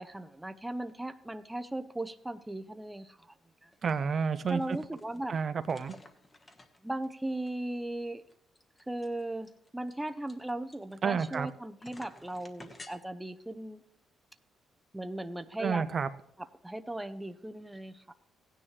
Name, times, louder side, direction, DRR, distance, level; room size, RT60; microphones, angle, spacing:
voice 1, 0.0-3.3 3.6-3.7 4.5-5.4 6.8-8.2 8.9-13.8 14.9-15.9 16.6-18.1, right 1 dB, 10° right, 9 dB, 0.7 m, -37 dB
sound 1, 3.7-3.9 4.2-5.2 5.6-7.1 7.5-7.6 7.8-7.9 8.3-11.5 11.8-12.9, left 2 dB, 25° left, 1.4 m, -52 dB
voice 2, 3.8-4.8 5.3-6.0 11.0-11.5 15.6-16.1, right 6 dB, 45° right, 12 dB, 0.5 m, -30 dB
16.0 x 9.8 x 3.3 m, 0.70 s
cardioid pair, 90°, 0 cm